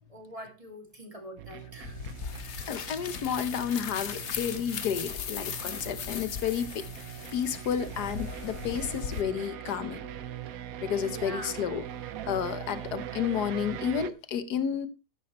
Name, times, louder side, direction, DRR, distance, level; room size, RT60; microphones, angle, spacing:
voice 1, 0.1-2.0 11.0-11.6, equal, 20° right, 2.4 m, -44 dB
sound 1, 1.4-14.1, right 11 dB, 65° right, 1.1 m, -41 dB
sound 2, 1.8-9.2, left 7 dB, 50° left, 1.0 m, -38 dB
voice 2, 2.7-6.9 7.3-10.1 10.8-11.8 12.3-14.9, left 8 dB, 75° left, 1.6 m, -31 dB
14.0 x 10.0 x 3.1 m
omnidirectional pair, 1.8 m